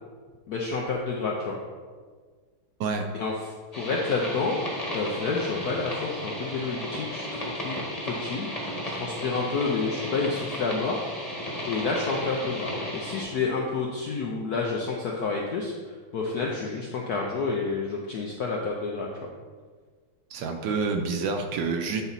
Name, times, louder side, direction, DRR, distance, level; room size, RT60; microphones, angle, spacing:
voice 1, 0.5-1.6 3.1-4.6 4.9-11.0 11.7-19.3, left 4 dB, 75° left, -1 dB, 0.9 m, -29 dB
sound 1, 3.7-13.2, equal, 25° left, 1.1 m, -34 dB
voice 2, 20.3-22.0, right 4 dB, 75° right, 5 dB, 1.2 m, -28 dB
8.9 x 4.0 x 4.1 m, 1.5 s
omnidirectional pair, 2.4 m